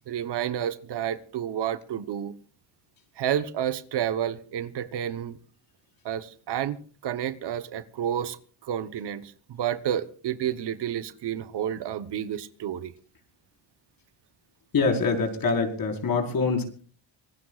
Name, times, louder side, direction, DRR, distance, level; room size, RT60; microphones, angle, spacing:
voice 1, 0.1-2.3 3.2-5.4 6.0-8.4 8.6-12.9, right 10 dB, 60° right, 1.2 m, -30 dB
voice 2, 14.7-16.8, left 4 dB, 45° left, 5.0 m, -25 dB
25.5 x 19.0 x 2.4 m
cardioid pair, 105°, 47 cm